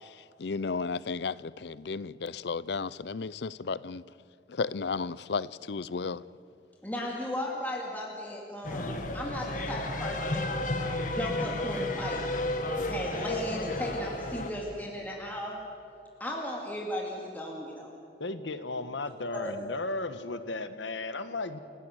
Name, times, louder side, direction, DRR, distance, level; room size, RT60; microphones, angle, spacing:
voice 1, 0.0-4.0 4.5-6.2, left 4 dB, 65° left, 0.5 m, -34 dB
voice 2, 6.8-10.6 11.1-12.3 12.8-15.6 16.2-17.9 19.3-19.6, left 1 dB, 10° left, 2.3 m, -36 dB
sound 1, 8.6-14.5, left 1 dB, 45° left, 1.9 m, -32 dB
voice 3, 18.2-21.6, left 3 dB, 85° left, 1.4 m, -35 dB
29.5 x 16.5 x 8.0 m
head